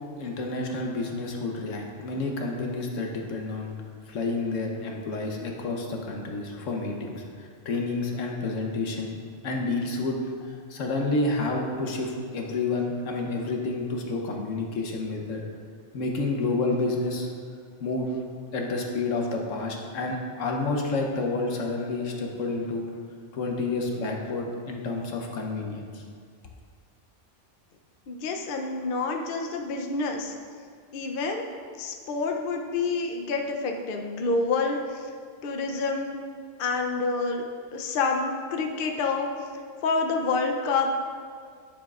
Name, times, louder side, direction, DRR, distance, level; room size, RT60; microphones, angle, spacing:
voice 1, 0.2-3.7 4.1-15.4 15.9-17.3 17.8-18.1 18.5-22.8 23.3-26.0, left 3 dB, 80° left, 1 dB, 1.2 m, -29 dB
voice 2, 28.1-30.3 30.9-31.4 31.8-35.1 35.4-36.2 36.6-37.4 37.7-39.3 39.8-41.0, left 3 dB, 55° left, 2 dB, 0.7 m, -28 dB
9.4 x 7.2 x 2.4 m, 2.1 s
omnidirectional pair, 1.3 m